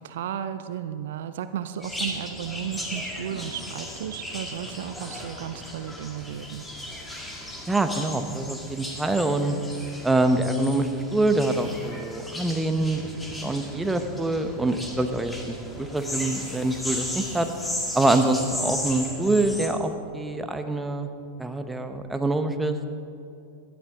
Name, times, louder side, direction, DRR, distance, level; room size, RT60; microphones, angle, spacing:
voice 1, 0.0-6.6, right 9 dB, 65° right, 11 dB, 0.5 m, -34 dB
sound 1, 1.8-19.7, left 1 dB, 10° left, 2.1 m, -36 dB
voice 2, 7.7-9.6 10.0-13.1 13.4-17.5 17.9-21.1 21.4-22.9, right 2 dB, 10° right, 7 dB, 0.9 m, -25 dB
17.0 x 11.5 x 3.7 m, 2.6 s
hypercardioid pair, 100°, 0 cm